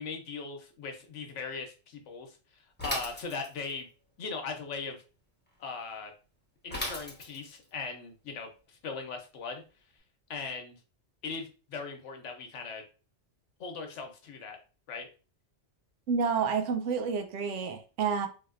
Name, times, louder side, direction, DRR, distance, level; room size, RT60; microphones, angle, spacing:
voice 1, 0.0-2.4 2.8-3.9 4.2-5.0 5.6-6.1 6.6-9.6 10.3-10.8 11.2-12.8 13.6-14.6 14.9-15.1, left 4 dB, 85° left, 1.1 m, -39 dB
Bicycle / Mechanisms, 2.8-3.8 6.7-7.6, left 1 dB, 10° left, 0.9 m, -36 dB
voice 2, 16.1-18.3, right 5 dB, 90° right, 0.9 m, -29 dB
3.3 x 2.7 x 2.5 m
omnidirectional pair, 1.2 m